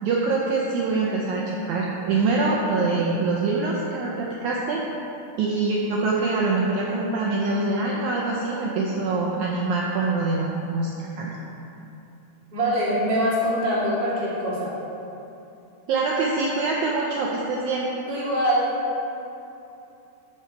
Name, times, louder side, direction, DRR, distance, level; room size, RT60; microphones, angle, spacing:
voice 1, 0.0-4.8 5.4-11.4 15.9-17.9, right 3 dB, 90° right, -3 dB, 1.6 m, -24 dB
voice 2, 12.5-14.8 18.1-18.7, equal, 25° right, -8 dB, 1.1 m, -23 dB
13.0 x 4.7 x 4.5 m, 2.8 s
omnidirectional pair, 4.3 m